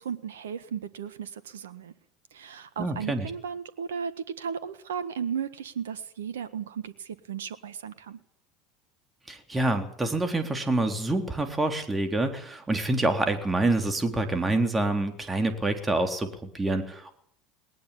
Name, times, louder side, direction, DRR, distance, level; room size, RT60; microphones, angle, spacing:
voice 1, 0.0-1.9 2.3-8.2, right 7 dB, 75° right, 13 dB, 1.5 m, -35 dB
voice 2, 2.8-3.3 9.3-17.1, right 2 dB, 15° right, 6 dB, 3.8 m, -27 dB
20.0 x 19.0 x 8.7 m, 0.64 s
hypercardioid pair, 75°, 0 cm